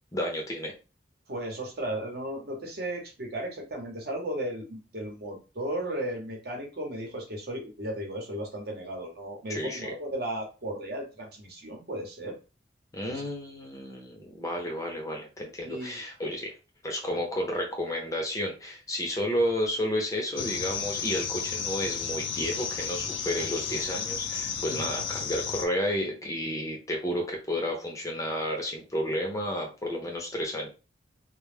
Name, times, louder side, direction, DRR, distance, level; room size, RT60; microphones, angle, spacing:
voice 1, 0.1-0.7 9.5-9.9 12.9-16.5 16.8-30.7, equal, 20° left, 1 dB, 0.5 m, -31 dB
voice 2, 1.3-12.4 13.0-13.3 15.6-16.0 24.7-24.9, right 1 dB, 55° right, 1 dB, 0.8 m, -35 dB
sound 1, 20.4-25.7, left 6 dB, 85° left, 0.4 m, -33 dB
2.1 x 2.0 x 3.2 m, 0.31 s
head